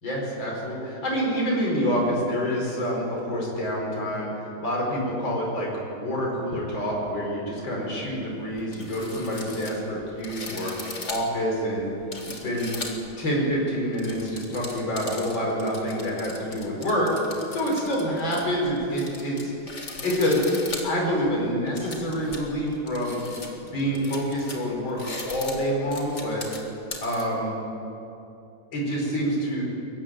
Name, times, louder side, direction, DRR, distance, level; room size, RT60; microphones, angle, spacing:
voice 1, 0.0-10.7 11.0-11.9 12.2-12.7 13.2-17.1 17.5-19.5 20.0-23.2 23.6-26.4 27.0-27.6 28.7-29.6, equal, 60° left, -3 dB, 5.7 m, -27 dB
sound 1, 8.2-8.3 8.6-13.2 13.7-27.2, left 2 dB, 35° left, 2.5 m, -39 dB
22.5 x 15.0 x 9.2 m, 2.8 s
omnidirectional pair, 2.3 m